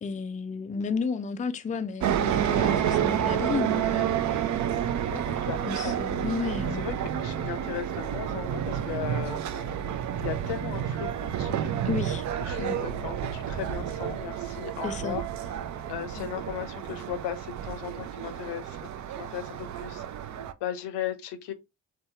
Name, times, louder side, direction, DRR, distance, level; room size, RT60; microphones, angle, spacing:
voice 1, 0.0-4.5 5.7-6.9 11.8-12.2 12.6-12.8 14.8-15.2 16.2-16.3, left 5 dB, 20° left, 0.4 m, -32 dB
sound 1, 2.0-20.5, right 9 dB, 45° right, 0.4 m, -30 dB
voice 2, 5.1-6.1 6.7-6.9 7.2-9.9 10.2-11.7 12.4-15.6 15.9-18.9 19.1-20.0 20.3-21.5, left 10 dB, 70° left, 0.7 m, -37 dB
2.7 x 2.3 x 2.7 m
hypercardioid pair, 50°, 44 cm